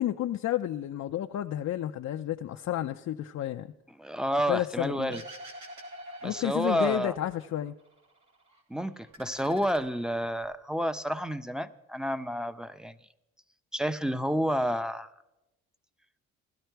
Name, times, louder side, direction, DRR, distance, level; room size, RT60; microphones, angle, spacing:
voice 1, 0.0-3.7 4.5-5.2 6.2-7.7, left 12 dB, 60° left, 5 dB, 0.6 m, -31 dB
voice 2, 4.0-5.2 6.2-7.1 8.7-13.0 13.7-15.1, equal, ahead, 12 dB, 0.7 m, -30 dB
sound 1, 5.1-7.5 7.8-8.6 8.9-10.5, equal, 70° right, 3.4 m, -47 dB
16.5 x 12.5 x 4.6 m, 0.92 s
cardioid pair, 90°, 30 cm